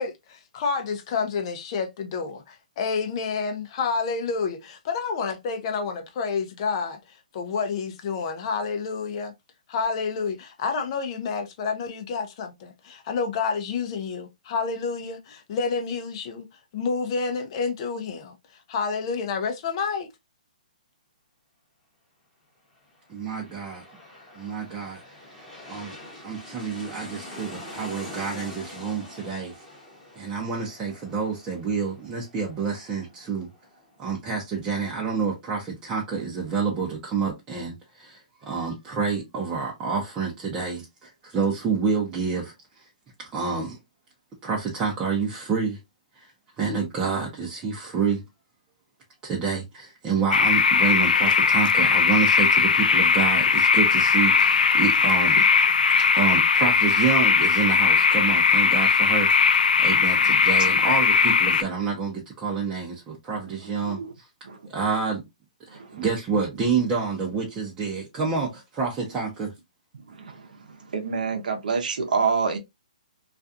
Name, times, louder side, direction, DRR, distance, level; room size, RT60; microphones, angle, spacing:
voice 1, 0.0-7.0 7.3-9.3 9.7-16.5 16.7-18.3 18.7-20.1, left 5 dB, 40° left, 0.5 m, -29 dB
sound 1, 22.9-34.3 34.7-34.8, left 1 dB, 10° left, 0.9 m, -44 dB
voice 2, 23.1-23.8 24.3-25.0 25.7-26.0 26.2-29.5 30.2-33.5 34.0-42.5 43.2-43.8 44.4-45.8 46.6-48.2 49.2-55.4 56.2-64.3 64.7-65.2 65.7-69.5, right 5 dB, 20° right, 0.6 m, -28 dB
sound 2, 50.3-61.6, left 5 dB, 90° left, 0.3 m, -19 dB
voice 3, 65.7-66.0 70.1-70.5 70.9-72.6, right 5 dB, 75° right, 0.7 m, -27 dB
2.4 x 2.3 x 2.6 m
hypercardioid pair, 150°, 4 cm